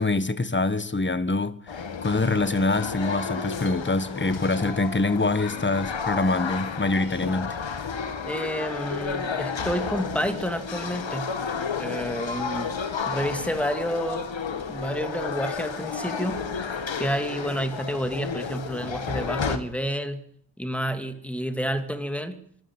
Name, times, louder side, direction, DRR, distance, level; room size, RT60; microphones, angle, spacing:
voice 1, 0.0-1.6 2.0-7.5, left 2 dB, 25° left, 1.5 m, -25 dB
sound 1, 1.7-19.6, left 5 dB, 80° left, 2.5 m, -32 dB
voice 2, 8.3-11.4 11.8-12.7 13.0-14.3 14.7-20.3 20.6-22.4, equal, 5° left, 2.6 m, -30 dB
25.0 x 16.0 x 9.1 m
wide cardioid pair, 115°, 45 cm